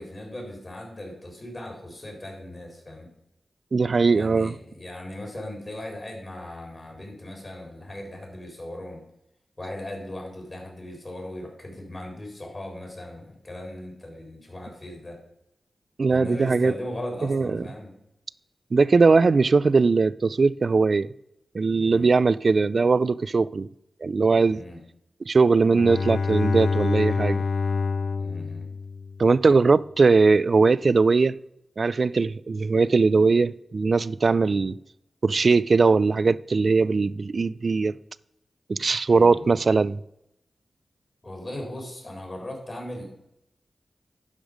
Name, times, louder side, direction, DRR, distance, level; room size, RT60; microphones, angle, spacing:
voice 1, 0.0-3.1 4.1-9.0 9.6-15.2 16.1-17.9 21.7-22.1 24.5-24.8 28.2-28.7 39.1-39.6 41.2-43.0, left 1 dB, 40° left, 4.0 m, -38 dB
voice 2, 3.7-4.5 16.0-16.7 17.2-17.6 18.7-21.1 21.5-23.7 24.0-24.6 25.2-27.4 29.2-31.4 31.8-34.8 35.2-38.0 38.7-40.0, right 4 dB, 60° right, 0.3 m, -20 dB
Bowed string instrument, 25.6-29.4, left 4 dB, 80° left, 0.3 m, -27 dB
11.5 x 5.2 x 5.1 m
cardioid pair, 60°, 0 cm